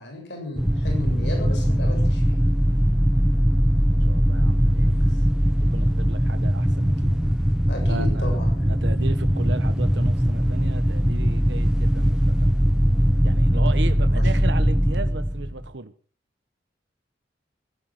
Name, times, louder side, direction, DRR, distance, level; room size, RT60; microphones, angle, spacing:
voice 1, 0.0-2.4 4.9-5.2 7.7-8.7 14.1-14.3, left 1 dB, 70° left, 7.3 m, -34 dB
sound 1, 0.6-15.7, equal, 5° right, 0.7 m, -20 dB
voice 2, 2.7-3.1 4.0-5.0 5.6-7.2 7.9-12.4 13.2-15.9, right 3 dB, 70° right, 1.0 m, -35 dB
15.5 x 15.0 x 6.1 m
head